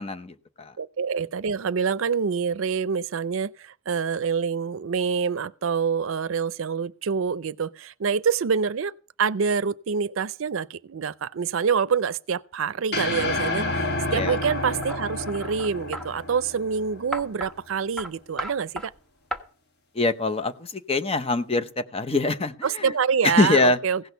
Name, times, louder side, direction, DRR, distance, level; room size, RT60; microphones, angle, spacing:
voice 1, 0.0-0.7 14.1-14.4 19.9-22.9 23.2-23.8, left 3 dB, 30° left, 0.7 m, -24 dB
voice 2, 0.8-13.9 14.1-18.9 22.6-24.1, right 6 dB, 80° right, 0.5 m, -26 dB
sound 1, 12.9-17.3, left 2 dB, 55° left, 1.4 m, -29 dB
sound 2, 14.3-16.1 17.1-17.5 18.0-18.1 18.4-18.9 19.3-19.4, equal, 5° left, 1.1 m, -34 dB
16.5 x 6.3 x 6.7 m
head